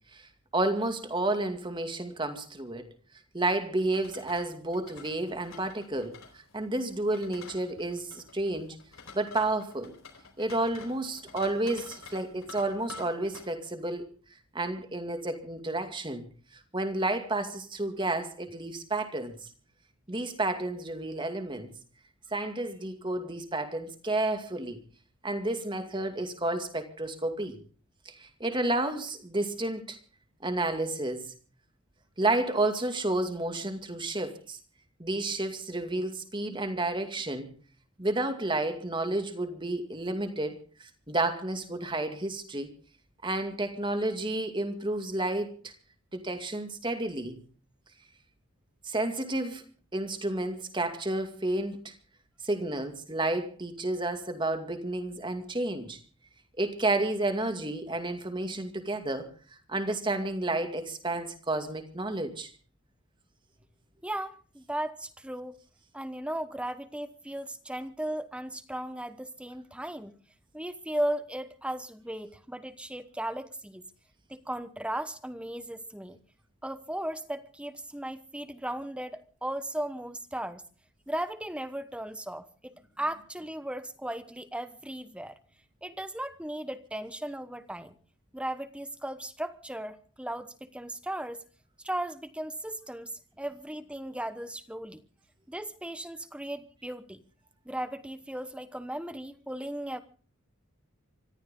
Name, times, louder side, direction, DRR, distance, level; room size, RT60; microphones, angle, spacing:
voice 1, 0.1-2.9 3.3-6.2 6.5-8.8 9.1-9.9 10.4-14.1 14.5-16.3 16.7-19.3 20.1-21.7 22.3-24.8 25.2-27.6 28.1-30.0 30.4-31.3 32.2-34.6 35.0-37.6 38.0-42.8 43.2-45.7 46.1-47.4 48.8-49.6 49.9-51.9 52.4-56.0 56.6-59.3 59.7-62.5, right 2 dB, 20° right, 7 dB, 2.3 m, -31 dB
sound 1, 3.8-13.5, left 4 dB, 65° left, 4.5 m, -49 dB
voice 2, 64.0-65.6 65.9-70.1 70.5-73.9 74.3-76.2 76.6-80.6 81.1-85.3 85.8-87.9 88.3-91.4 91.8-95.0 95.5-97.2 97.6-100.0, right 1 dB, 5° right, 12 dB, 1.0 m, -36 dB
25.5 x 14.5 x 3.8 m, 0.39 s
head